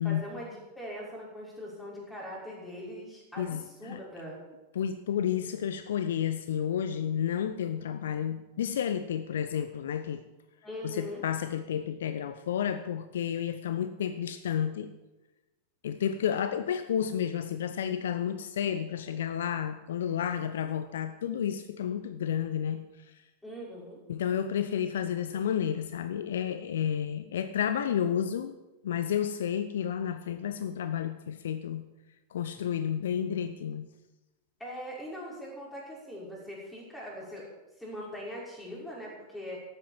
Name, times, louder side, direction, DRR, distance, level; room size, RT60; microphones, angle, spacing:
voice 1, 0.0-4.4 10.6-11.2 23.4-24.0 34.6-37.5 37.8-39.6, equal, 5° left, -4 dB, 5.6 m, -41 dB
voice 2, 3.4-4.0 4.8-10.2 10.8-14.9 15.8-22.8 24.1-28.5 28.8-31.8 32.3-33.9, left 9 dB, 60° left, 11 dB, 0.6 m, -31 dB
13.0 x 8.9 x 7.5 m, 1.0 s
figure-of-eight pair, 90°, 0 cm